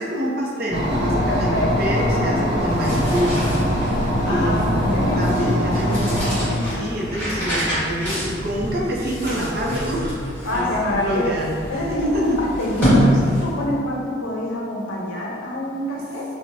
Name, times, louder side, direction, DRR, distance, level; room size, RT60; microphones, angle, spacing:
voice 1, 0.0-4.8 5.2-6.2 6.6-10.2 10.5-10.7 11.0-11.8, right 1 dB, 50° right, -3 dB, 0.5 m, -27 dB
sound 1, 0.7-6.4, equal, 25° right, 0.9 m, -22 dB
voice 2, 1.3-2.0 4.2-7.2 10.4-11.3 11.7-16.2, left 1 dB, 80° left, -4 dB, 0.7 m, -26 dB
sound 2, 2.6-13.7, equal, 10° left, 1.4 m, -26 dB
4.6 x 2.1 x 2.6 m, 2.2 s
head